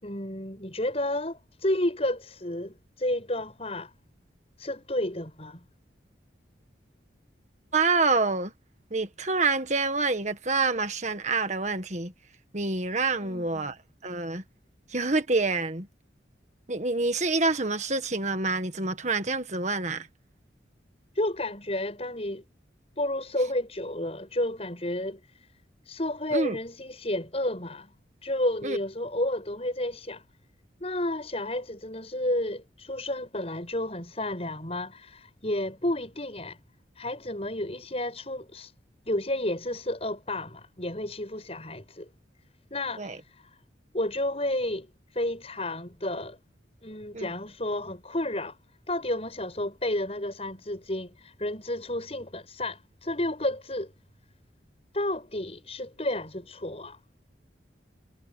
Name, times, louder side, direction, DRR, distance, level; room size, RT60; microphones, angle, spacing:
voice 1, 0.0-3.9 4.6-5.6 13.2-13.7 21.1-22.4 23.0-25.5 25.9-27.9 28.2-30.2 30.8-36.6 37.0-38.7 39.1-42.1 42.7-43.6 43.9-46.4 46.8-48.6 48.9-53.9 54.9-57.0, left 1 dB, 30° left, 7.2 m, -31 dB
voice 2, 7.7-8.5 8.9-12.1 12.5-14.4 14.9-15.9 16.7-20.1 26.3-26.6 28.6-28.8 43.0-43.2 47.1-47.3, right 3 dB, 40° right, 1.7 m, -27 dB
head